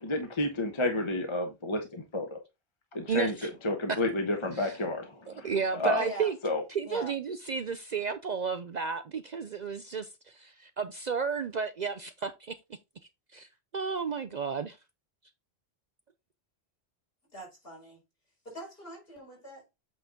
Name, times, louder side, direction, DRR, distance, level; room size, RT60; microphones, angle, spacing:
voice 1, 0.0-2.4 2.9-6.0 6.4-6.6, left 1 dB, 30° left, 1.0 m, -30 dB
voice 2, 3.1-3.5 4.6-4.8 5.3-6.4 6.7-12.5 13.3-13.5 13.7-14.8, right 5 dB, 50° right, 0.6 m, -33 dB
voice 3, 5.9-6.3 6.8-7.1 17.3-18.0 18.4-19.6, right 1 dB, 60° left, 5.0 m, -42 dB
8.4 x 3.9 x 3.7 m
omnidirectional pair, 1.1 m